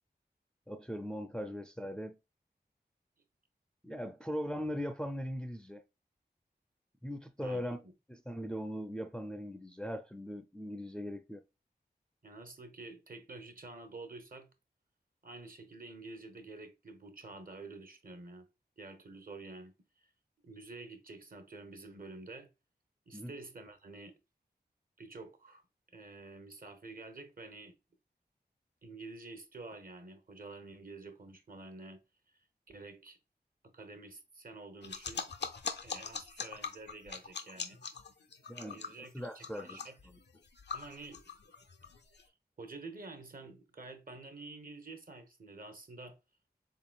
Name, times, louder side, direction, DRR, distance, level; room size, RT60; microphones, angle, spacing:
voice 1, 0.7-2.2 3.8-5.8 7.0-11.4 23.1-23.3 38.5-38.8 39.1-39.8, equal, 5° left, 0.4 m, -40 dB
voice 2, 7.4-7.9 12.2-14.5 15.2-18.5 18.8-20.1 20.4-22.5 23.1-24.2 25.0-25.6 25.9-27.8 28.8-32.0 32.3-33.2 33.6-35.3 35.8-37.8 38.6-40.0 40.7-41.2 41.8-42.3 42.6-46.2, right 3 dB, 55° right, 0.9 m, -49 dB
sound 1, 34.8-42.2, left 5 dB, 85° left, 0.5 m, -42 dB
3.8 x 3.7 x 2.3 m
cardioid pair, 45°, 17 cm